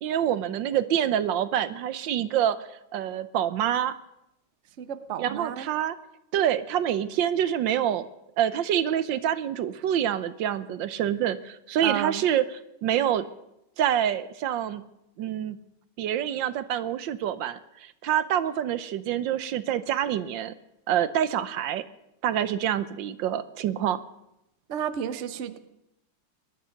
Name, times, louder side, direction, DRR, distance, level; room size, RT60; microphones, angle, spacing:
voice 1, 0.0-4.0 5.2-6.0 6.3-8.1 8.4-13.3 13.8-14.8 15.2-15.6 16.0-20.5 20.9-21.8 22.2-24.0, right 10 dB, 85° right, 14 dB, 1.5 m, -26 dB
voice 2, 4.8-5.7 11.8-12.2 24.7-25.6, right 9 dB, 50° right, 11 dB, 1.1 m, -31 dB
19.5 x 12.5 x 5.8 m, 0.85 s
omnidirectional pair, 2.0 m